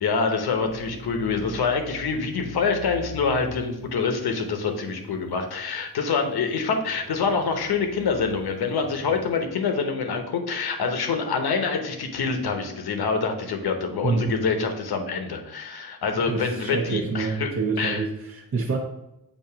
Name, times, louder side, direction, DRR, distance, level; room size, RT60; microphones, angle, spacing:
voice 1, 0.0-17.5 17.8-18.0, left 5 dB, 85° left, 5 dB, 0.9 m, -26 dB
sound 1, 0.5-9.5, left 1 dB, 5° right, 0.8 m, -43 dB
voice 2, 14.0-14.3 16.1-18.8, right 4 dB, 45° right, -5 dB, 1.0 m, -27 dB
6.8 x 2.6 x 5.7 m, 0.87 s
wide cardioid pair, 100°, 37 cm